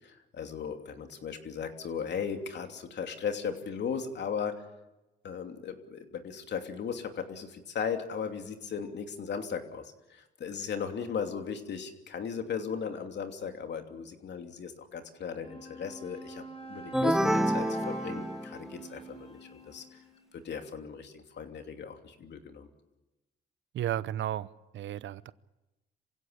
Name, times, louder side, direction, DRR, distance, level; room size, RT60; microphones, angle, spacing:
voice 1, 0.0-4.6 5.2-9.8 10.1-19.8 20.3-22.7, left 6 dB, 60° left, 5 dB, 2.9 m, -37 dB
Wind instrument woodwind instrument, 15.3-20.2, right 2 dB, 30° left, 7.0 m, -45 dB
sound 1, 16.9-18.8, equal, ahead, 1.0 m, -28 dB
voice 2, 23.7-24.5 24.7-25.3, right 12 dB, 70° right, 17 dB, 0.8 m, -33 dB
27.0 x 16.5 x 8.6 m, 1.0 s
cardioid pair, 90°, 20 cm